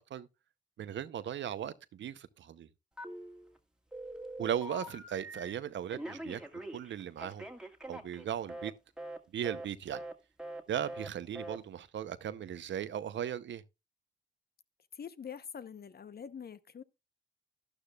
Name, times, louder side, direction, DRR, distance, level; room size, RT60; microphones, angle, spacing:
voice 1, 0.8-2.7 4.4-6.4 6.7-7.4 7.9-8.7 9.3-10.0 10.7-13.6, right 9 dB, 80° right, 0.8 m, -37 dB
Telephone, 3.0-3.6 3.9-5.5 5.9-8.7 9.0-9.2 9.4-9.7 9.9-10.1 10.4-10.6 10.9-11.1 11.3-11.6, right 1 dB, 5° right, 2.0 m, -43 dB
voice 2, 14.9-16.8, left 7 dB, 55° left, 0.9 m, -45 dB
12.0 x 11.5 x 2.4 m
cardioid pair, 55°, 19 cm